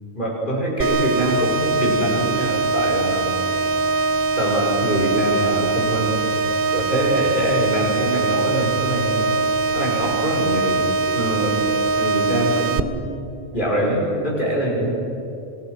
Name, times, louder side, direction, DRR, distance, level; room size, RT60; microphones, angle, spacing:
voice 1, 0.1-3.3 4.4-6.2 6.7-9.3 9.7-10.9 11.1-11.7 12.0-13.1 13.5-14.9, equal, 40° left, -3 dB, 5.7 m, -24 dB
sound 1, 0.8-12.8, right 3 dB, 50° right, 1.0 m, -22 dB
27.0 x 20.0 x 6.5 m, 2.8 s
omnidirectional pair, 1.2 m